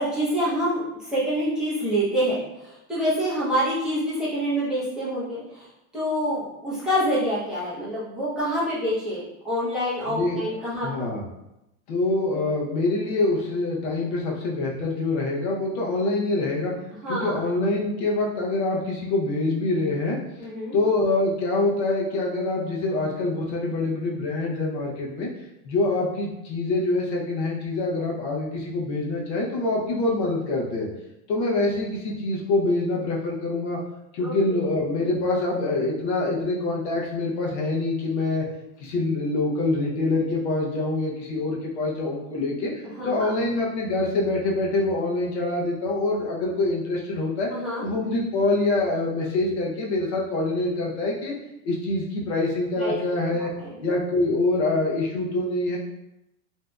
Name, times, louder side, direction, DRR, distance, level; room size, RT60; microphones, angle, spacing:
voice 1, 0.0-5.7 5.9-10.9 17.0-17.4 20.4-20.8 34.2-34.6 43.0-43.3 47.5-47.9 52.8-53.0 53.6-53.8, equal, ahead, -11 dB, 0.6 m, -26 dB
voice 2, 10.1-10.4 10.8-11.2 11.9-16.7 17.1-20.2 20.7-25.3 25.6-30.9 31.3-33.8 34.1-38.4 38.8-47.5 47.8-51.3 51.6-53.5 53.8-55.8, left 2 dB, 50° left, -2 dB, 0.7 m, -25 dB
3.2 x 2.7 x 2.2 m, 0.89 s
supercardioid pair, 160°, 44 cm